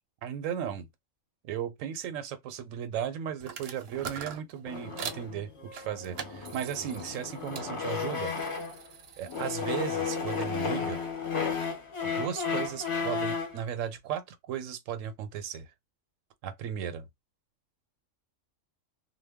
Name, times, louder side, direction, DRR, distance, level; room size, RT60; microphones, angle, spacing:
voice 1, 0.2-0.9 1.4-8.3 9.2-11.0 12.0-15.7 16.4-17.1, right 9 dB, 85° right, 1.0 m, -36 dB
sound 1, 3.4-5.3 5.7-7.7 8.1-10.7, right 7 dB, 65° right, 0.7 m, -43 dB
sound 2, 4.7-8.9 9.3-13.6, left 5 dB, 40° left, 0.4 m, -33 dB
2.2 x 2.0 x 3.4 m
omnidirectional pair, 1.3 m